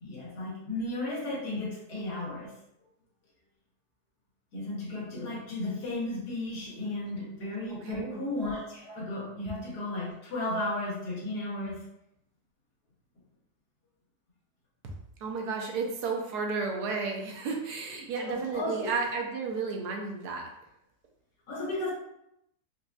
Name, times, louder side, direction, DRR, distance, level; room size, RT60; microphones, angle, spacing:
voice 1, 0.0-2.5 4.5-11.8 18.2-18.9 21.5-21.9, left 2 dB, 90° left, -5 dB, 1.8 m, -34 dB
voice 2, 7.8-8.2 14.8-14.9 15.2-20.5, right 4 dB, 85° right, 1 dB, 1.2 m, -32 dB
4.5 x 2.5 x 2.3 m, 0.79 s
omnidirectional pair, 1.7 m